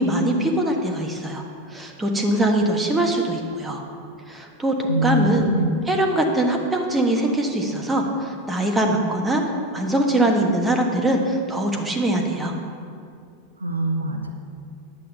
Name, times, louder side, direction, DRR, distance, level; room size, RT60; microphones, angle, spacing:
voice 1, 0.0-1.4 1.7-3.8 4.3-5.5 5.9-9.4 9.7-12.5, right 1 dB, 10° right, 1 dB, 1.2 m, -22 dB
voice 2, 4.9-5.7 13.6-14.3, equal, 80° right, 3 dB, 0.9 m, -23 dB
10.0 x 8.1 x 5.5 m, 2.4 s
figure-of-eight pair, 90°, 0 cm